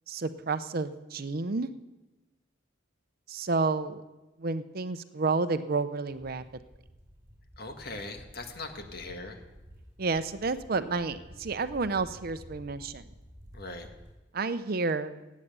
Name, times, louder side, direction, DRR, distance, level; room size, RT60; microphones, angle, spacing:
voice 1, 0.1-1.7 3.3-4.0 4.4-6.4 10.0-13.0 14.3-15.2, right 3 dB, 50° right, 12 dB, 0.6 m, -30 dB
sound 1, 6.1-14.1, equal, 15° right, 4.5 m, -52 dB
voice 2, 7.6-9.4 13.5-13.9, left 2 dB, 55° left, 5 dB, 1.6 m, -40 dB
17.5 x 8.4 x 6.8 m, 1.1 s
head